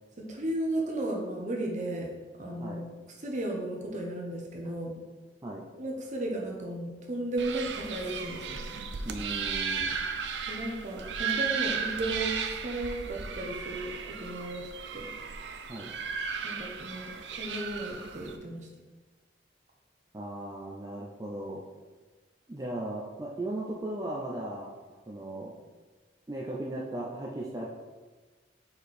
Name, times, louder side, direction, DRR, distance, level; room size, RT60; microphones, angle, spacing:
voice 1, 0.2-2.1 2.4-2.9 3.2-4.9 5.8-8.6 10.5-12.3 12.6-15.1 16.4-18.7, right 1 dB, 45° right, 0 dB, 1.1 m, -34 dB
sound 1, 7.4-18.4, right 6 dB, 75° right, 0.5 m, -35 dB
voice 2, 9.0-9.9 15.7-15.9 20.1-21.6 22.5-24.7 25.1-25.5 26.3-27.7, right 1 dB, 20° right, -3 dB, 0.6 m, -37 dB
5.1 x 4.6 x 4.3 m, 1.3 s
head